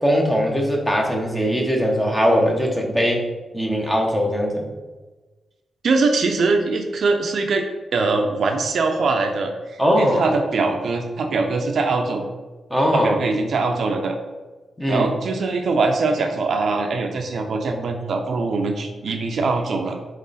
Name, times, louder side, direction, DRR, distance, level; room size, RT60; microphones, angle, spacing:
voice 1, 0.0-3.2 3.5-4.7 9.8-10.2 12.7-13.2 14.8-15.1, equal, 10° left, 0 dB, 1.1 m, -20 dB
voice 2, 5.8-7.7 7.9-12.3 12.9-14.2 14.9-20.0, right 3 dB, 60° right, 4 dB, 0.6 m, -22 dB
7.4 x 3.2 x 4.2 m, 1.2 s
wide cardioid pair, 145°, 0 cm